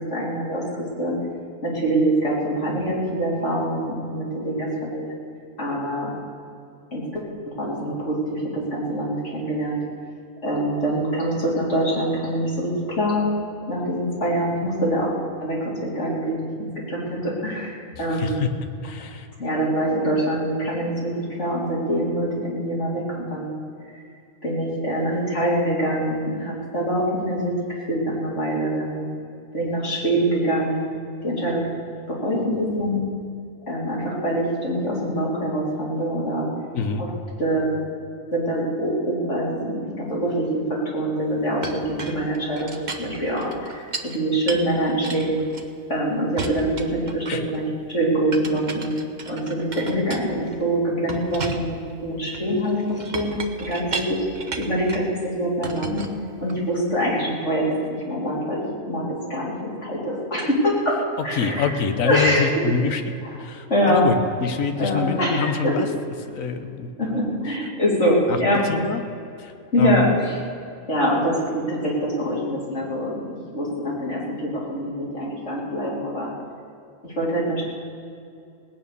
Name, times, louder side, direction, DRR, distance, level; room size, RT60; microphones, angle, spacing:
voice 1, 0.1-0.6 1.0-1.1 1.6-5.2 5.6-6.1 6.9-7.2 7.6-9.8 10.4-13.3 13.7-15.1 15.4-18.4 19.4-21.1 21.4-23.6 24.4-27.5 27.9-29.1 29.5-30.9 31.2-31.7 32.1-33.0 33.7-36.5 37.0-37.1 37.4-37.8 38.3-40.5 40.9-45.4 45.9-48.9 49.3-53.3 53.6-54.2 54.6-56.0 56.4-59.0 59.3-61.0 61.2-61.7 62.0-62.6 63.7-64.1 64.8-65.7 67.0-68.6 69.7-70.4 70.9-73.2 73.5-76.3 77.0-77.6, right 1 dB, 60° left, -5 dB, 4.1 m, -24 dB
voice 2, 17.9-18.5 18.8-19.3 36.7-37.0 47.3-47.4 61.3-63.0 63.4-65.9 66.2-67.2 68.3-69.0 69.4-70.1, left 6 dB, 80° left, 8 dB, 1.4 m, -26 dB
Chink clink, 41.6-44.2 44.5-46.0 46.4-47.6 48.3-50.6 51.1-55.1 55.6-56.8, right 4 dB, 40° right, 1.0 m, -35 dB
18.5 x 9.4 x 6.8 m, 2.5 s
omnidirectional pair, 1.4 m